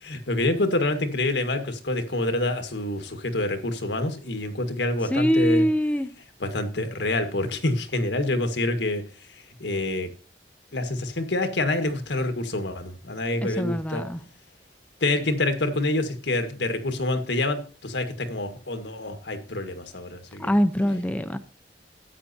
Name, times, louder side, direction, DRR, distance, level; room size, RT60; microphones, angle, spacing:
voice 1, 0.0-5.6 6.4-9.0 9.6-10.1 10.7-14.1 15.0-20.5, left 2 dB, 80° left, 8 dB, 1.7 m, -27 dB
voice 2, 5.1-6.1 13.4-14.2 20.4-21.4, equal, 10° left, 9 dB, 0.6 m, -23 dB
13.5 x 9.1 x 2.8 m, 0.36 s
head